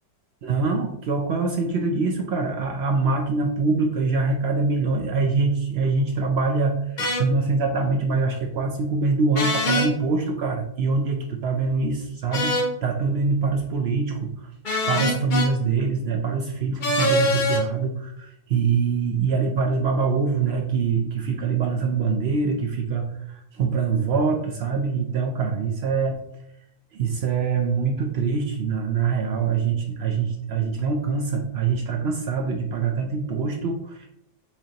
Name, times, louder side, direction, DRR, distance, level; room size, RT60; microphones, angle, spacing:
voice 1, 0.4-14.5 14.9-26.2 26.9-34.1, right 4 dB, 80° right, 2 dB, 0.5 m, -24 dB
sound 1, 7.0-7.2 9.3-9.9 12.3-12.7 14.6-15.5 16.8-17.6, left 1 dB, 50° left, 0.5 m, -23 dB
5.5 x 3.4 x 2.8 m, 0.78 s
omnidirectional pair, 1.7 m